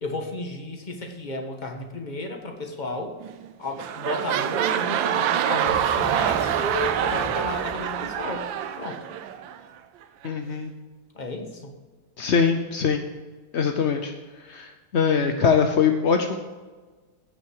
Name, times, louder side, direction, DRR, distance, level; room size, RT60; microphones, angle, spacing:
voice 1, 0.0-3.1 3.6-8.4 8.8-9.0 11.1-11.7, left 2 dB, 25° left, 3 dB, 1.5 m, -33 dB
sound 1, 3.2-3.5 3.7-9.6 10.2-10.3, right 9 dB, 85° right, 1.5 m, -26 dB
Boom, 5.6-8.4, right 1 dB, 10° right, 1.1 m, -38 dB
voice 2, 10.2-10.7 12.2-13.0 13.5-14.1 14.4-16.4, left 6 dB, 60° left, 5 dB, 0.7 m, -22 dB
16.0 x 6.3 x 4.8 m, 1.3 s
omnidirectional pair, 2.0 m